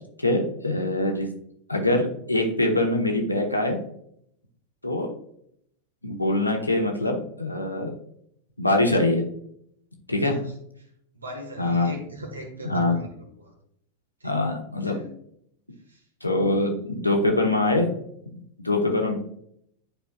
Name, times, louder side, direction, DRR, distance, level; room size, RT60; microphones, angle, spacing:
voice 1, 0.2-1.3 1.7-3.8 4.8-5.1 6.0-7.9 8.6-9.2 10.1-10.4 11.6-11.9 12.6-13.0 14.2-15.0 16.2-17.9 18.6-19.2, left 2 dB, 90° left, 2 dB, 1.1 m, -23 dB
voice 2, 11.1-13.5 14.2-14.5 14.8-15.1 15.9-16.0, equal, 85° right, 4 dB, 1.5 m, -39 dB
10.0 x 4.5 x 2.3 m, 0.71 s
figure-of-eight pair, 90°, 0 cm